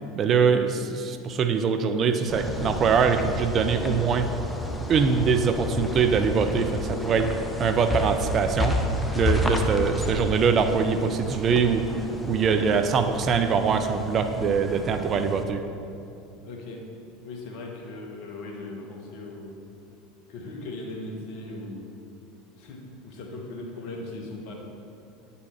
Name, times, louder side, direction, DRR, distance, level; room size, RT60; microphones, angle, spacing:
voice 1, 0.2-4.3 4.9-7.3 7.6-8.8 9.1-11.9 12.3-15.6, right 6 dB, 40° right, 8 dB, 0.5 m, -23 dB
sound 1, 2.3-15.4, left 1 dB, 10° left, 0.7 m, -31 dB
voice 2, 16.4-16.9 17.2-19.6 20.3-21.9 22.6-24.5, left 2 dB, 60° left, 1 dB, 1.2 m, -38 dB
9.6 x 4.2 x 4.4 m, 2.7 s
hypercardioid pair, 80°, 0 cm